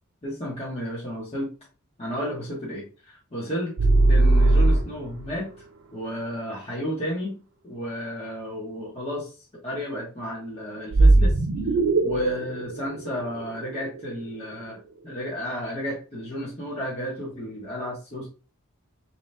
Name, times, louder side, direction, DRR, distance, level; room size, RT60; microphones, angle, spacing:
voice 1, 0.2-1.5 2.0-3.7 4.1-5.5 5.9-7.4 7.6-9.4 9.6-11.4 12.0-14.8 15.0-18.3, equal, 30° left, -6 dB, 1.2 m, -32 dB
sound 1, 3.8-5.3 10.9-14.0, right 2 dB, 75° right, 0.7 m, -19 dB
3.8 x 2.9 x 3.3 m, 0.34 s
head